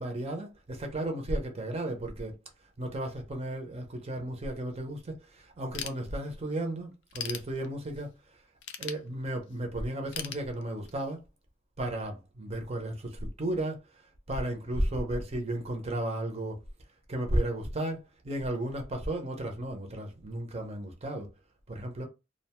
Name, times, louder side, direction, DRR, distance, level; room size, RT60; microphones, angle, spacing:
voice 1, 0.0-2.4 2.8-8.1 8.8-11.2 11.8-14.0 14.3-16.6 17.1-21.3 21.7-22.0, right 1 dB, 30° right, 0.6 m, -34 dB
Ratchet pawl / Tools, 5.7-6.5 6.9-8.1 8.6-9.6 10.1-11.1, left 8 dB, 65° left, 0.4 m, -39 dB
2.5 x 2.2 x 2.9 m
head